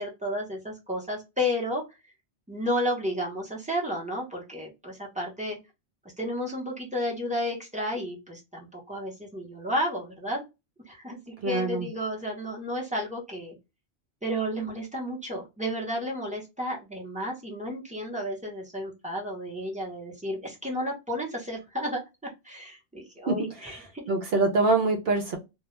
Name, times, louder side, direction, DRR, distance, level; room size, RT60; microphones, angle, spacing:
voice 1, 0.0-1.8 2.5-5.6 6.2-10.4 10.9-13.5 14.2-24.0, equal, 10° right, -2 dB, 0.7 m, -32 dB
voice 2, 11.4-11.9 23.3-23.4 24.1-25.4, right 3 dB, 65° right, 3 dB, 0.7 m, -24 dB
2.2 x 2.2 x 3.0 m, 0.24 s
omnidirectional pair, 1.2 m